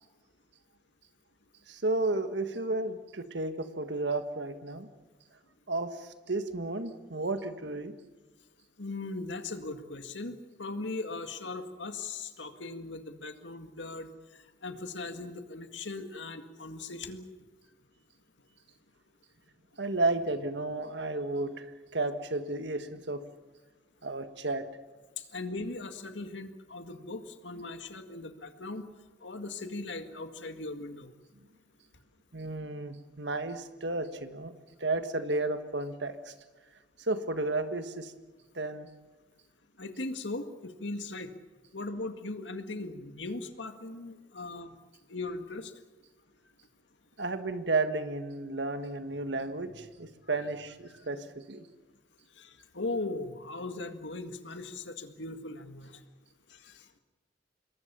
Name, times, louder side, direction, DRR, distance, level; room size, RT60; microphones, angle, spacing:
voice 1, 1.7-4.9 5.7-7.9 19.8-23.2 24.0-24.7 32.3-34.5 34.8-36.3 37.0-38.1 38.5-38.9 47.2-51.7, right 2 dB, 70° right, 9 dB, 1.7 m, -32 dB
voice 2, 8.8-17.3 25.2-28.9 29.2-31.1 39.8-41.3 41.7-44.7 45.1-45.7 52.4-56.0 56.5-56.9, left 3 dB, 90° left, 7 dB, 2.0 m, -39 dB
27.0 x 21.5 x 7.0 m, 1.2 s
head